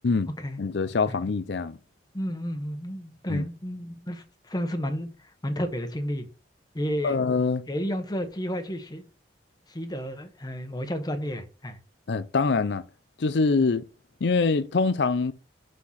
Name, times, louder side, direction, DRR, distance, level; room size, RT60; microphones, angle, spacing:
voice 1, 0.6-1.8 3.3-3.4 7.0-7.7 12.1-12.8 13.2-13.9 14.2-15.3, left 4 dB, 70° left, 0.5 m, -24 dB
voice 2, 2.1-6.3 6.7-7.2 7.7-9.1 9.7-11.8, equal, 20° left, 1.1 m, -32 dB
6.2 x 5.8 x 5.7 m
head